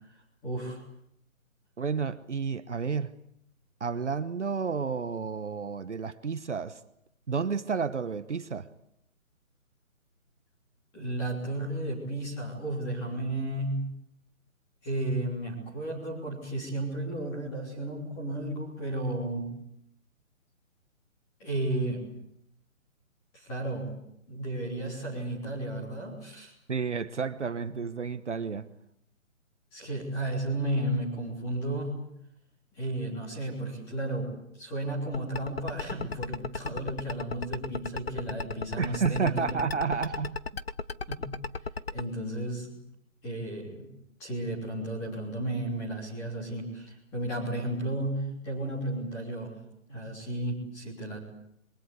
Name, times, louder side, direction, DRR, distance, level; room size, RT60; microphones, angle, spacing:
voice 1, 0.4-0.8 10.9-13.8 14.8-19.5 21.4-22.1 23.3-23.9 24.3-26.5 29.7-32.0 32.8-34.3 34.6-39.6 41.1-41.3 41.9-42.7 43.2-43.9 44.2-49.6 49.9-51.2, right 1 dB, 5° left, 3.2 m, -33 dB
voice 2, 1.8-3.1 3.8-6.8 7.3-8.7 26.7-28.7 38.8-40.4, right 5 dB, 60° right, 1.2 m, -31 dB
sound 1, 35.1-42.0, left 4 dB, 45° left, 1.1 m, -33 dB
27.0 x 23.0 x 8.4 m
hypercardioid pair, 180°, 41 cm